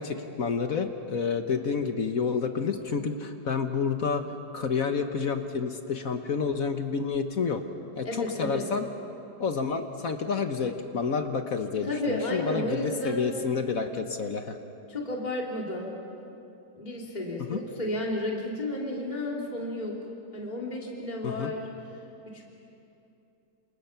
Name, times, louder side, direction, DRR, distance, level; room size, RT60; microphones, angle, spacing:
voice 1, 0.0-4.2 4.5-7.6 8.0-8.9 9.4-14.6 17.5-17.6 21.2-21.5, left 5 dB, 55° left, 6 dB, 1.5 m, -29 dB
voice 2, 8.0-8.6 11.8-13.2 14.9-15.9 16.7-19.9 20.3-21.7 22.3-22.5, left 1 dB, 25° left, -2 dB, 3.0 m, -32 dB
28.5 x 28.0 x 5.9 m, 2.8 s
omnidirectional pair, 1.9 m